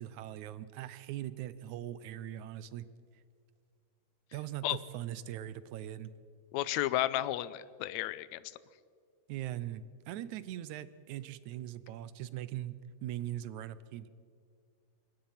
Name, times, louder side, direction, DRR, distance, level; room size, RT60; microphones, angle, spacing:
voice 1, 0.0-2.9 4.3-6.1 9.3-12.8 13.0-14.1, right 12 dB, 80° right, 16 dB, 2.2 m, -41 dB
voice 2, 6.5-8.4, left 14 dB, 75° left, 16 dB, 1.9 m, -32 dB
26.5 x 21.5 x 5.8 m, 2.2 s
omnidirectional pair, 3.4 m